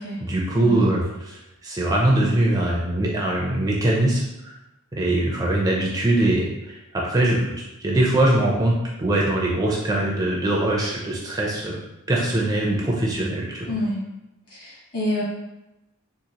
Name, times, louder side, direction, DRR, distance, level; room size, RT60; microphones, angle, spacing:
voice 1, 0.2-4.5 5.0-11.8 12.1-13.7, right 1 dB, 15° right, -3 dB, 0.4 m, -22 dB
voice 2, 13.6-14.0 14.5-15.2, left 1 dB, 45° left, -10 dB, 1.2 m, -27 dB
3.9 x 2.4 x 2.8 m, 0.95 s
head